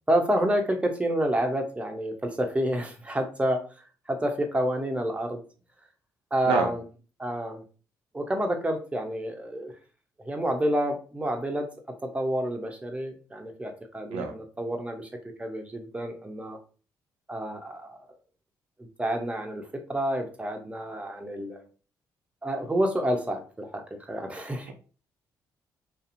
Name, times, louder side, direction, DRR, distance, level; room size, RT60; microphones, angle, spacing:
voice 1, 0.1-3.6 4.1-5.4 6.3-6.8 7.2-7.6 8.1-9.7 10.2-11.7 12.0-15.1 15.4-16.6 17.3-18.0 19.0-21.6 22.4-24.7, right 1 dB, 15° right, 3 dB, 0.8 m, -29 dB
voice 2, 6.4-6.7 14.1-14.3 24.7-24.8, right 5 dB, 85° right, 4 dB, 0.4 m, -27 dB
2.7 x 2.5 x 2.5 m, 0.37 s
hypercardioid pair, 50°, 9 cm